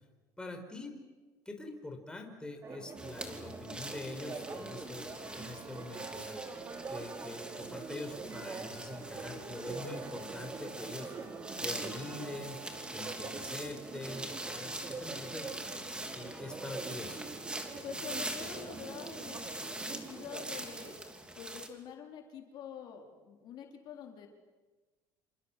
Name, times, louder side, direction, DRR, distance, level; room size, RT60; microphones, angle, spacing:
voice 1, 0.4-0.9 1.5-6.6 6.9-11.1 11.6-12.6 12.9-15.5 16.1-17.2, left 2 dB, 10° left, 4 dB, 5.1 m, -44 dB
Church bell, 2.6-21.0, right 4 dB, 30° right, 3.2 m, -45 dB
sound 1, 3.0-21.7, right 1 dB, 10° right, 3.2 m, -43 dB
voice 2, 17.8-21.0 21.4-24.3, left 8 dB, 55° left, 2 dB, 4.0 m, -46 dB
28.0 x 26.5 x 7.7 m, 1.3 s
cardioid pair, 110°, 9 cm